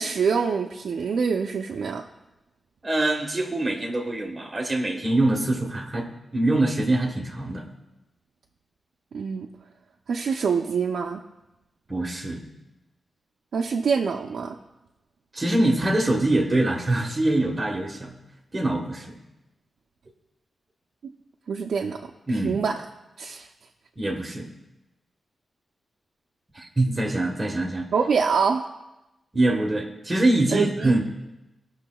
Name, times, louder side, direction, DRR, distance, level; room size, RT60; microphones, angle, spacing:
voice 1, 0.0-2.0 9.1-9.5 10.1-11.2 13.5-14.5 21.0-21.1 21.5-22.8 23.2-23.5 27.9-28.7 30.5-31.0, right 5 dB, 75° right, 1 dB, 0.5 m, -25 dB
voice 2, 2.8-7.7 11.9-12.4 15.3-18.1 18.5-19.2 22.3-22.6 24.0-24.5 26.5-27.9 29.3-31.0, right 1 dB, 20° right, 1 dB, 1.3 m, -24 dB
18.0 x 6.2 x 2.3 m, 0.98 s
wide cardioid pair, 135°, 0 cm